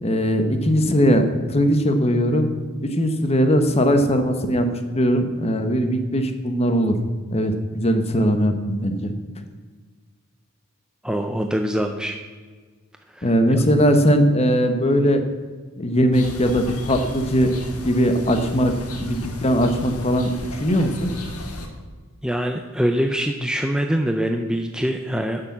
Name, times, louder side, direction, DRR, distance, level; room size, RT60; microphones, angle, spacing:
voice 1, 0.0-2.5 2.8-4.7 4.9-7.0 7.3-9.1 13.2-15.2 15.8-17.5 17.8-20.3 20.6-21.1, equal, 30° left, 7 dB, 1.0 m, -20 dB
voice 2, 11.0-12.2 13.1-13.6 22.2-25.4, equal, 5° right, 5 dB, 0.5 m, -24 dB
sound 1, 16.1-21.7, left 2 dB, 90° left, 1.6 m, -35 dB
9.7 x 6.8 x 7.2 m, 1.5 s
head